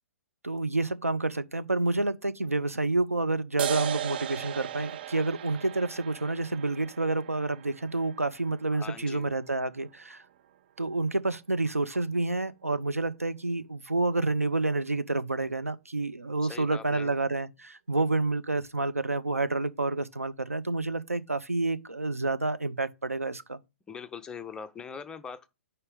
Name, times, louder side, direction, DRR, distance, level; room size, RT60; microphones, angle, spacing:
voice 1, 0.4-10.2 10.8-23.6, right 2 dB, 85° right, 0.6 m, -29 dB
sound 1, 3.6-10.6, right 11 dB, 40° right, 0.4 m, -38 dB
voice 2, 8.7-9.3 16.4-17.1 23.9-25.5, left 6 dB, 10° left, 0.5 m, -41 dB
5.5 x 4.2 x 5.0 m
figure-of-eight pair, 120°, 8 cm